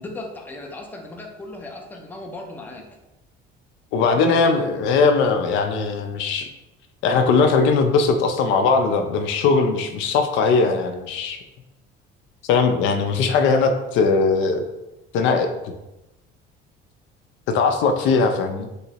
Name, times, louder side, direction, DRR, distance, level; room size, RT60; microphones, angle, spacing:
voice 1, 0.0-2.9 4.2-4.6, left 2 dB, 10° left, 1 dB, 0.4 m, -36 dB
voice 2, 3.9-6.5 7.0-11.4 12.5-14.6 15.1-15.7 17.5-18.7, left 4 dB, 70° left, 6 dB, 0.4 m, -19 dB
3.1 x 2.8 x 2.8 m, 0.97 s
cardioid pair, 130°, 21 cm